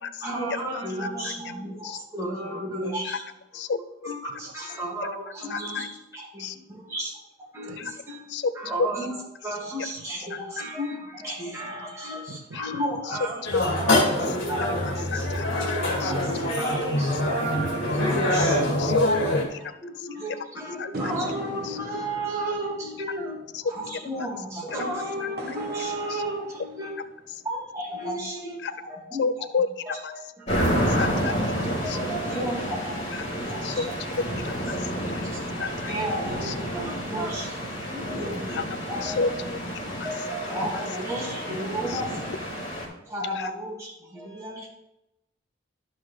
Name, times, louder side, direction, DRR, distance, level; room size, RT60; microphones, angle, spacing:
voice 1, 0.2-3.2 4.0-7.1 7.5-19.3 19.8-23.4 23.7-26.9 27.4-29.2 29.9-31.2 31.8-34.2 35.0-35.4 35.9-38.6 38.9-39.4 40.0-42.3 43.1-44.7, right 1 dB, 15° right, -6 dB, 2.3 m, -33 dB
voice 2, 1.0-1.3 1.8-2.0 3.0-3.2 3.5-4.1 5.5-5.9 6.4-6.6 7.8-8.0 8.3-8.5 8.8-8.9 10.3-10.4 12.5-12.7 13.0-13.2 13.5-13.7 15.1-15.4 16.0-16.2 18.3-18.5 18.8-20.1 20.8-21.1 21.6-21.8 23.5-23.6 23.9-24.1 25.2-25.6 26.1-26.2 28.6-28.7 29.2-30.1 30.9-31.3 31.9-32.0 33.6-33.9 34.4-35.9 36.4-36.5 38.5-38.6 39.0-39.6 40.0-40.1 41.9-42.0 43.4-43.5, left 4 dB, 55° left, 12 dB, 0.4 m, -30 dB
voice 3, 12.3-12.8 17.2-17.7 35.8-35.9 36.5-36.9 37.8-37.9 40.6-40.7 41.3-41.6 41.9-42.0, right 3 dB, 90° right, 9 dB, 0.6 m, -42 dB
sound 1, 13.5-19.5, left 1 dB, 75° left, 2.3 m, -24 dB
sound 2, 20.9-27.4, right 1 dB, 45° right, 1.1 m, -40 dB
sound 3, 30.5-42.8, equal, 35° left, 3.3 m, -30 dB
12.5 x 5.6 x 3.4 m, 0.91 s
head